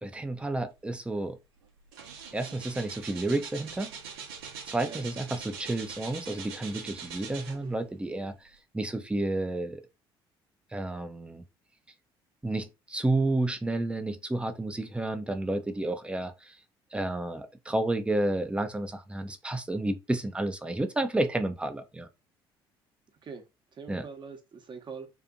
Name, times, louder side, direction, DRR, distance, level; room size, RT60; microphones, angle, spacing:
voice 1, 0.0-1.4 2.3-3.9 4.7-8.5 8.7-9.8 10.7-11.4 12.4-16.5 16.9-22.1 23.9-24.0, right 2 dB, 10° right, 0.5 m, -31 dB
sound 1, 1.1-1.3 1.6-7.9 8.5-8.6, right 6 dB, 80° right, 0.6 m, -43 dB
voice 2, 23.7-25.1, right 5 dB, 40° right, 0.9 m, -43 dB
2.8 x 2.4 x 2.5 m
hypercardioid pair, 55°, 13 cm